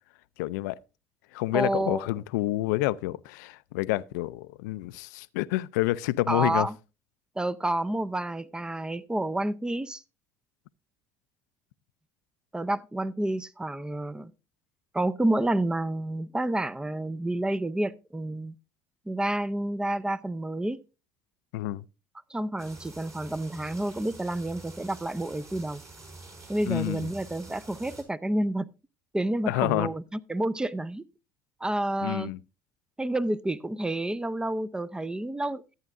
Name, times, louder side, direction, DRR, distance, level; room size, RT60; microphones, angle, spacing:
voice 1, 0.4-0.8 1.3-6.7 21.5-21.8 26.7-27.1 29.5-29.9 32.0-32.4, left 17 dB, 85° left, 0.4 m, -28 dB
voice 2, 1.5-2.0 6.3-6.7 7.4-10.0 12.5-14.3 14.9-18.5 19.1-20.8 22.3-25.8 26.5-28.7 29.1-31.0 31.6-32.3 33.0-35.6, right 1 dB, 10° right, 0.5 m, -29 dB
sound 1, 22.6-28.0, right 2 dB, 30° right, 4.6 m, -47 dB
14.0 x 8.9 x 2.5 m
supercardioid pair, 85°, 9 cm